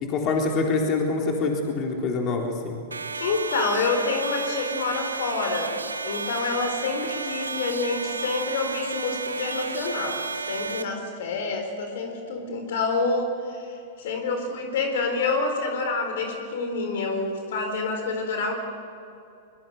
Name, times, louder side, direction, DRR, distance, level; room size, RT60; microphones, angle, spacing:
voice 1, 0.0-2.8, left 3 dB, 40° left, 1 dB, 3.8 m, -25 dB
sound 1, 2.9-10.8, right 4 dB, 90° right, 1.2 m, -32 dB
voice 2, 3.2-18.5, left 3 dB, 65° left, 5 dB, 4.2 m, -27 dB
23.5 x 22.5 x 6.7 m, 2.7 s
hypercardioid pair, 100°, 0 cm